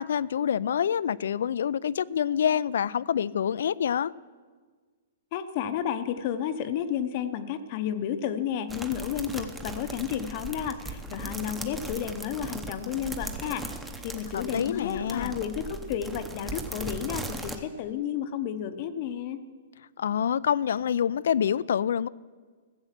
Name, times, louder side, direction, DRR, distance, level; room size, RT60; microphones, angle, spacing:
voice 1, 0.0-4.1 14.3-15.4 20.0-22.1, left 8 dB, 70° left, 0.3 m, -26 dB
voice 2, 5.3-13.6 14.0-19.4, left 9 dB, 35° left, 0.7 m, -32 dB
sound 1, 8.7-17.6, right 2 dB, 5° right, 0.7 m, -38 dB
15.0 x 7.9 x 7.4 m
hypercardioid pair, 165°, 0 cm